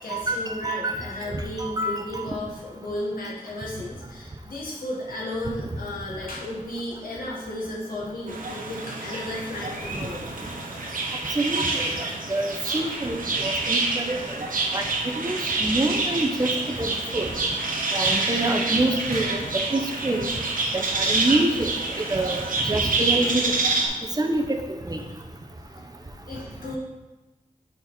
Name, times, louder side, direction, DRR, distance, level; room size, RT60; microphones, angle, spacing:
voice 1, 0.0-10.2 10.7-10.9 19.1-19.3 22.2-22.4 25.1-25.2 26.3-26.8, left 1 dB, 90° left, -5 dB, 1.7 m, -34 dB
voice 2, 1.6-2.2 11.4-11.9 12.3-13.1 13.4-14.2 14.7-14.8 15.2-16.9 17.1-17.3 17.9-19.4 19.7-20.2 20.7-21.7 22.1-22.4 22.7-23.4 24.2-24.4 24.9-25.0, right 2 dB, 25° right, 3 dB, 0.7 m, -26 dB
sound 1, 8.3-23.9, right 3 dB, 70° right, 1.0 m, -27 dB
6.5 x 4.2 x 4.1 m, 1.1 s
wide cardioid pair, 85°, 15 cm